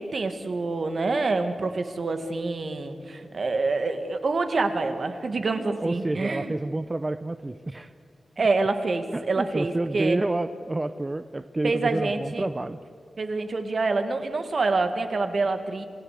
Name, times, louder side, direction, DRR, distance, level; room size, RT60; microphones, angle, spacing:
voice 1, 0.0-6.5 8.4-10.2 11.6-12.5 13.2-15.8, right 3 dB, 50° right, 7 dB, 1.9 m, -26 dB
voice 2, 5.8-7.9 9.1-12.8, right 2 dB, 20° right, 11 dB, 0.6 m, -29 dB
27.5 x 17.0 x 8.4 m, 2.3 s
wide cardioid pair, 125°, 0 cm